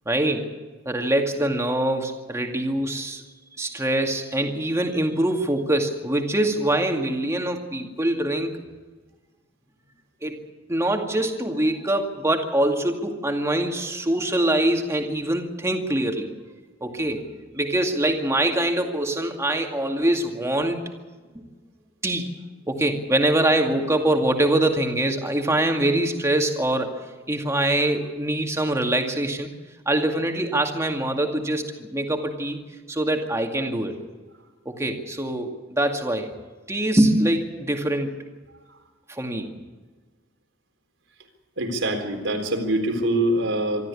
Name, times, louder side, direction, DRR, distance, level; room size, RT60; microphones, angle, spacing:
voice 1, 0.1-0.5 0.9-3.2 3.6-8.6 10.2-10.4 10.7-16.3 16.8-17.2 17.5-20.8 21.3-21.4 22.0-22.3 22.7-26.9 27.3-29.5 29.9-32.6 32.9-33.9 34.7-36.3 36.7-38.1 39.1-39.5, right 1 dB, 15° right, 3 dB, 2.2 m, -24 dB
voice 2, 41.6-43.9, right 1 dB, 90° right, 4 dB, 4.0 m, -24 dB
25.0 x 13.5 x 8.5 m, 1.3 s
head